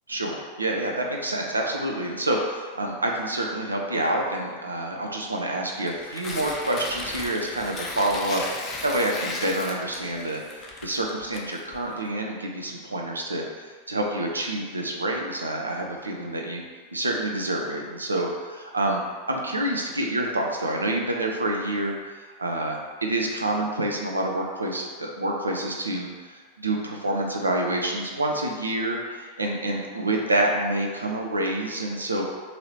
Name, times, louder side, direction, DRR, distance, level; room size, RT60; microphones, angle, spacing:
voice 1, 0.1-16.6 16.9-19.0 19.3-29.0 29.2-32.2, right 1 dB, 80° right, 0 dB, 0.4 m, -27 dB
Tearing, 5.8-12.0, left 2 dB, 30° left, 0.4 m, -36 dB
2.8 x 2.7 x 3.0 m, 1.5 s
figure-of-eight pair, 90°, 0 cm